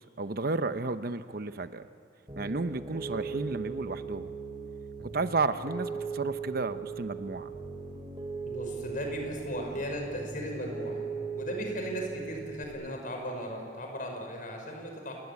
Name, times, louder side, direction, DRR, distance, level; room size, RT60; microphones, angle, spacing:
voice 1, 0.2-1.9 2.4-4.3 5.1-7.5, right 3 dB, 55° right, 11 dB, 0.8 m, -32 dB
Piano, 2.3-12.6, right 5 dB, 25° right, 2.9 m, -39 dB
Musical instrument, 3.3-10.1, left 2 dB, 85° left, 6.0 m, -61 dB
voice 2, 8.5-11.0 11.3-15.1, equal, 50° left, 3 dB, 5.8 m, -36 dB
29.0 x 20.0 x 8.5 m, 2.8 s
head